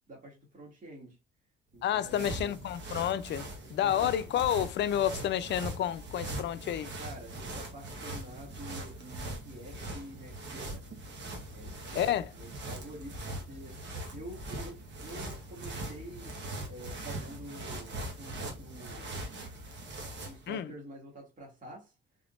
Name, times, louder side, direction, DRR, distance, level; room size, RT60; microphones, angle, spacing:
voice 1, 0.1-1.2 1.7-2.6 3.8-4.3 7.0-11.0 11.5-16.3 16.7-19.3 20.2-21.9, right 1 dB, 40° right, 1.9 m, -48 dB
sound 1, 1.7-20.5, right 1 dB, 65° right, 1.3 m, -41 dB
voice 2, 1.8-6.9 11.9-12.3 20.5-20.7, left 10 dB, 65° left, 0.5 m, -30 dB
3.6 x 3.4 x 2.5 m
cardioid pair, 90°, 20 cm